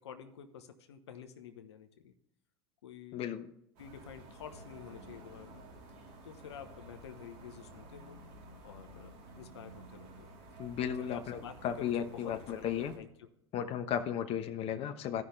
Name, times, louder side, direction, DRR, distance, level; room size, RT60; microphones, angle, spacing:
voice 1, 0.0-2.1 2.8-3.2 3.8-5.6 6.2-8.2 8.6-10.3 11.0-13.3, left 8 dB, 80° left, 8 dB, 1.1 m, -49 dB
voice 2, 3.1-3.5 10.6-12.9 13.5-15.2, left 9 dB, 45° left, 8 dB, 1.0 m, -35 dB
sound 1, 3.8-13.0, right 2 dB, 60° right, 3.6 m, -52 dB
15.5 x 5.9 x 3.3 m, 0.79 s
hypercardioid pair, 90°, 14 cm